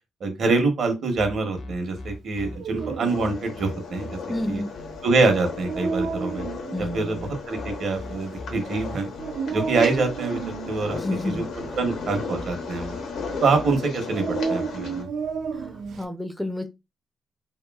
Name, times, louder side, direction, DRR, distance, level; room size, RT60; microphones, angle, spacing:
voice 1, 0.2-4.2 4.5-4.6 5.0-6.4 6.8-7.2 7.5-9.1 9.5-11.0 11.2-13.0 13.4-15.1, right 3 dB, 60° right, 0.8 m, -25 dB
sound 1, 1.2-13.8, left 1 dB, 55° left, 0.6 m, -40 dB
Dog, 2.3-16.1, right 5 dB, 80° right, 0.4 m, -33 dB
sound 2, 3.1-15.0, left 5 dB, 80° left, 0.8 m, -36 dB
voice 2, 4.3-4.7 6.7-7.3 10.9-11.5 15.5-15.7 16.0-16.7, left 1 dB, 5° left, 0.4 m, -30 dB
2.9 x 2.5 x 2.3 m
cardioid pair, 110°, 0 cm